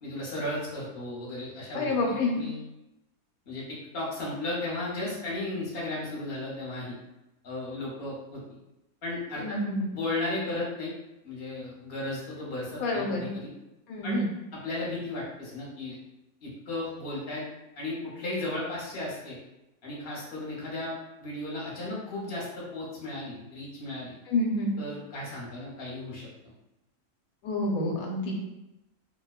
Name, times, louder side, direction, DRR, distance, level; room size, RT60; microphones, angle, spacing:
voice 1, 0.0-2.6 3.5-6.9 7.4-8.4 9.0-9.6 9.9-10.9 11.2-13.5 14.0-14.2 14.6-16.0 16.4-17.4 17.8-19.4 19.8-24.1 24.8-26.5, left 2 dB, 45° left, -5 dB, 0.9 m, -35 dB
voice 2, 1.7-2.4 9.3-9.9 12.8-13.3 13.9-14.3 24.3-24.7 27.4-28.5, left 2 dB, 75° left, 0 dB, 1.0 m, -28 dB
2.5 x 2.1 x 2.3 m, 0.93 s
omnidirectional pair, 1.6 m